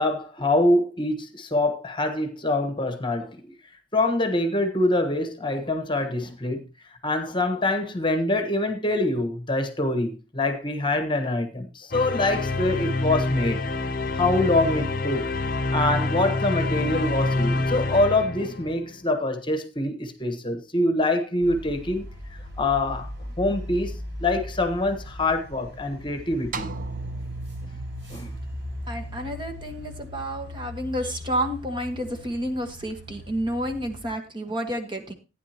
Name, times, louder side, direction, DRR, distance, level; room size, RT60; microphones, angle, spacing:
voice 1, 0.0-3.5 3.9-6.6 7.0-13.7 14.1-15.3 15.7-22.1 22.6-23.1 23.4-23.9 24.2-26.7 28.1-28.3, left 2 dB, 25° left, 1.2 m, -25 dB
sound 1, 11.9-19.0, left 2 dB, 50° left, 0.8 m, -27 dB
sound 2, 21.4-34.1, left 1 dB, 65° right, 7.8 m, -39 dB
sound 3, 26.5-30.9, right 3 dB, 45° right, 0.6 m, -37 dB
voice 2, 28.9-35.1, equal, 25° right, 1.4 m, -30 dB
15.0 x 9.7 x 2.9 m
head